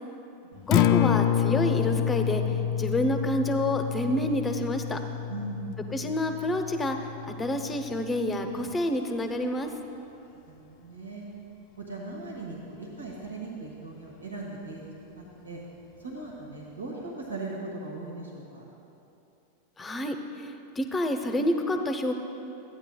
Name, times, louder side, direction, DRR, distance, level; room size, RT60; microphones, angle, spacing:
Acoustic guitar, 0.6-8.8, left 9 dB, 50° left, 0.3 m, -28 dB
voice 1, 0.7-5.0 5.9-7.0 7.4-9.7 19.8-22.1, left 1 dB, 15° left, 6 dB, 0.7 m, -28 dB
voice 2, 5.3-5.8 10.5-11.3 11.8-15.6 16.0-18.6, right 3 dB, 90° right, -2 dB, 1.3 m, -39 dB
13.5 x 9.0 x 2.3 m, 2.9 s
figure-of-eight pair, 95°, 0 cm